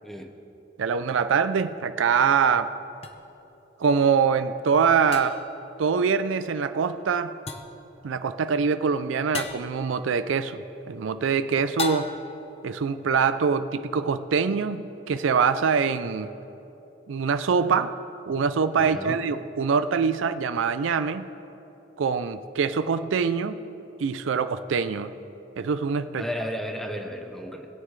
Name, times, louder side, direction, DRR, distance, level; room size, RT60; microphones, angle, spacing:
voice 1, 0.8-2.8 3.8-5.4 5.8-7.4 8.0-12.1 12.6-16.3 17.1-17.9 18.3-21.3 22.0-23.6 24.0-25.1 25.6-26.3, right 6 dB, 85° right, 12 dB, 0.4 m, -24 dB
sound 1, 3.0-3.1 5.1-5.6 7.5-7.8 9.3-9.7 11.8-12.4, left 4 dB, 30° left, 0.6 m, -33 dB
voice 2, 18.8-19.2 26.2-27.7, equal, ahead, 4 dB, 0.8 m, -33 dB
19.5 x 8.8 x 3.2 m, 3.0 s
head